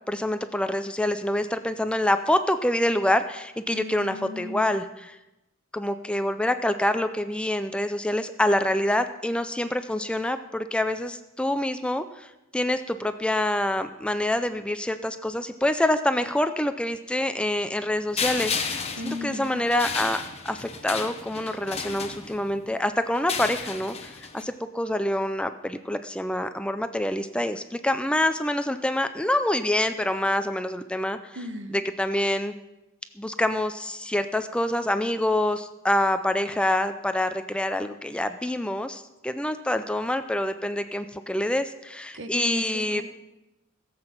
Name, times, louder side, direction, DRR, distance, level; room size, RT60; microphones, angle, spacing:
voice 1, 0.1-5.2 5.7-31.4 31.7-32.5 33.2-43.0, left 1 dB, 5° left, 9 dB, 0.4 m, -26 dB
voice 2, 3.7-4.7 19.0-19.6 31.3-31.8 42.1-43.0, left 1 dB, 65° right, 8 dB, 1.2 m, -36 dB
sound 1, 18.2-22.6 23.1-24.4, left 5 dB, 30° left, 1.1 m, -33 dB
16.5 x 7.9 x 5.8 m, 0.95 s
head